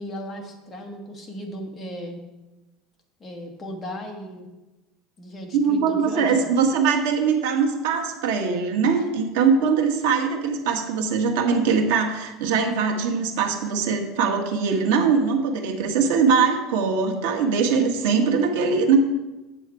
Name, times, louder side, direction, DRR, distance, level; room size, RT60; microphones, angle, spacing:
voice 1, 0.0-2.2 3.2-4.5 5.2-6.5, equal, 15° left, 1 dB, 1.1 m, -36 dB
voice 2, 5.5-19.0, right 5 dB, 90° right, 3 dB, 1.3 m, -21 dB
8.3 x 7.2 x 4.7 m, 1.1 s
cardioid pair, 175°, 0 cm